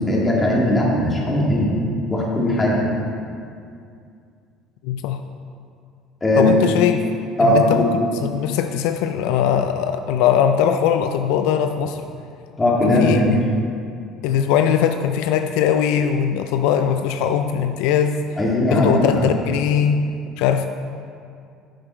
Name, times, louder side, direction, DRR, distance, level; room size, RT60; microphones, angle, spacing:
voice 1, 0.0-1.7 2.1-2.8 6.2-6.6 7.4-7.9 12.6-13.3 18.4-19.3, left 1 dB, 15° left, -4 dB, 2.4 m, -18 dB
voice 2, 4.8-5.2 6.4-7.1 7.4-7.9 8.2-12.0 12.9-13.4 14.2-18.3 18.7-20.1 20.4-20.7, left 8 dB, 80° left, 7 dB, 0.4 m, -20 dB
8.9 x 7.5 x 4.5 m, 2.4 s
supercardioid pair, 105°, 0 cm